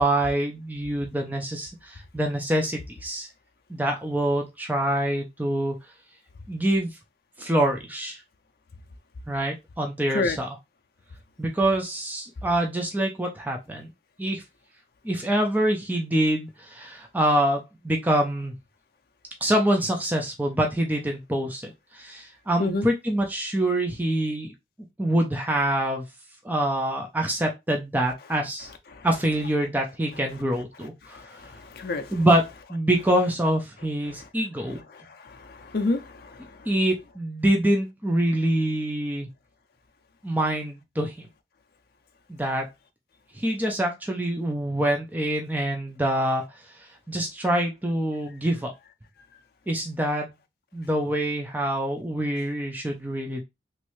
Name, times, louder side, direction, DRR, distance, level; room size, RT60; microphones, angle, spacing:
voice 1, 0.0-3.3 3.7-5.7 6.5-6.9 7.4-8.2 9.3-10.5 11.4-13.9 14.2-14.4 15.0-18.5 19.4-24.5 25.0-26.0 26.4-28.7 29.0-31.2 32.1-32.4 32.7-34.8 36.7-39.3 40.2-41.3 42.3-42.7 43.4-46.4 47.1-48.7 49.7-50.3 50.7-53.4, right 1 dB, 10° right, 0.5 m, -25 dB
voice 2, 31.0-32.3 34.0-34.3 34.6-36.7, left 3 dB, 55° left, 0.5 m, -31 dB
3.1 x 2.7 x 3.1 m
head